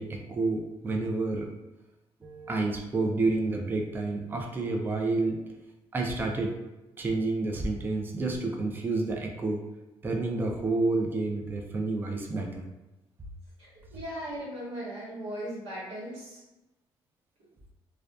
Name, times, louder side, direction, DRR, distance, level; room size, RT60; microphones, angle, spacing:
voice 1, 0.0-1.5 2.2-5.5 5.9-6.6 7.0-9.6 10.0-12.7, right 3 dB, 20° right, 2 dB, 0.3 m, -29 dB
voice 2, 13.6-16.4, equal, 85° right, -7 dB, 1.1 m, -38 dB
2.5 x 2.2 x 2.3 m, 1.0 s
cardioid pair, 105°, 11 cm